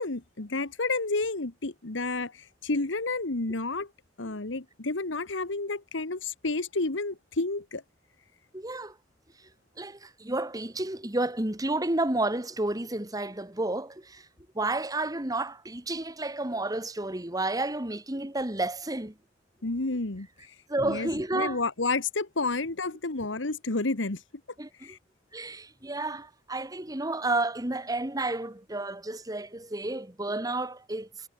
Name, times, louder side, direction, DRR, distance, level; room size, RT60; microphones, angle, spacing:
voice 1, 0.0-3.9 4.2-7.8 19.6-20.3 20.8-24.2 24.8-25.0, left 3 dB, 90° left, 1.6 m, -30 dB
voice 2, 8.5-8.9 9.8-14.3 14.6-19.1 20.7-21.6 24.6-25.0 25.3-31.1, right 2 dB, 20° right, 1.9 m, -31 dB
head